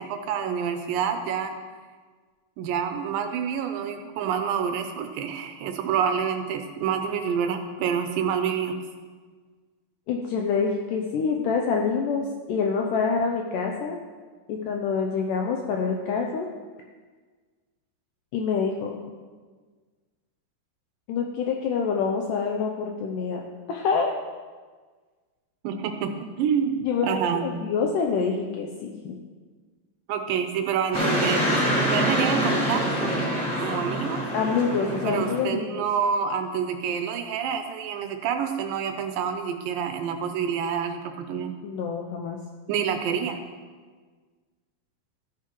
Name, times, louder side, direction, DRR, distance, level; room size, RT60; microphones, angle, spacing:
voice 1, 0.0-1.5 2.6-8.8 25.6-27.5 30.1-33.1 33.6-34.2 35.0-41.5 42.7-43.4, right 7 dB, 80° right, 6 dB, 2.1 m, -27 dB
voice 2, 10.1-14.0 14.5-16.5 18.3-19.0 21.1-23.4 23.7-24.1 26.8-29.2 34.3-35.8 41.6-42.4, left 5 dB, 85° left, 1 dB, 1.9 m, -26 dB
sound 1, 30.9-35.4, equal, 5° left, 2.1 m, -25 dB
14.0 x 9.4 x 3.1 m, 1.5 s
omnidirectional pair, 4.5 m